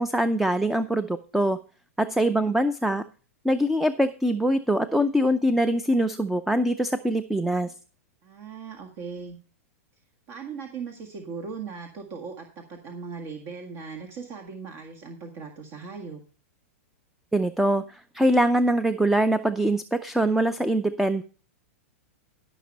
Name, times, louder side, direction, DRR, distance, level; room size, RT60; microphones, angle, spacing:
voice 1, 0.0-1.6 2.0-3.0 3.4-7.7 17.3-21.2, right 1 dB, 5° right, 12 dB, 0.5 m, -23 dB
voice 2, 2.1-2.5 8.2-9.4 10.3-16.2, right 5 dB, 45° right, 3 dB, 1.8 m, -39 dB
13.0 x 6.0 x 5.3 m, 0.37 s
hypercardioid pair, 120°, 8 cm